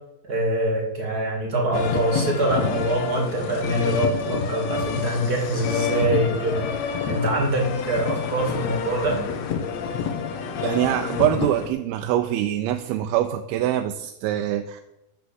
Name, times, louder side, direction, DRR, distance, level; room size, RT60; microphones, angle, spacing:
voice 1, 0.2-9.2, right 1 dB, 30° right, 0 dB, 2.3 m, -24 dB
sound 1, 1.7-11.7, left 6 dB, 85° left, 1.4 m, -28 dB
voice 2, 10.6-14.8, right 12 dB, 80° right, 7 dB, 2.4 m, -24 dB
12.5 x 5.8 x 7.9 m, 0.89 s
omnidirectional pair, 4.5 m